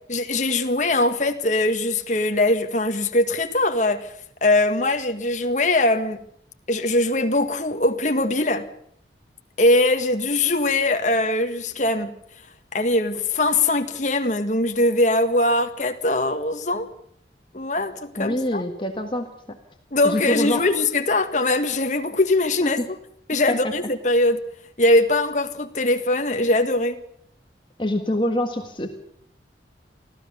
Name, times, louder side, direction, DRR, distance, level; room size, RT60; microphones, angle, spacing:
voice 1, 0.1-4.1 4.4-6.2 6.7-8.7 9.6-12.2 12.7-16.9 17.5-18.6 19.9-22.8 23.3-24.4 24.8-27.0, left 2 dB, 45° left, 1.8 m, -21 dB
voice 2, 18.2-19.6 20.0-20.6 22.6-22.9 23.5-23.7 27.8-28.9, left 1 dB, 25° left, 1.6 m, -25 dB
25.0 x 15.5 x 7.0 m
head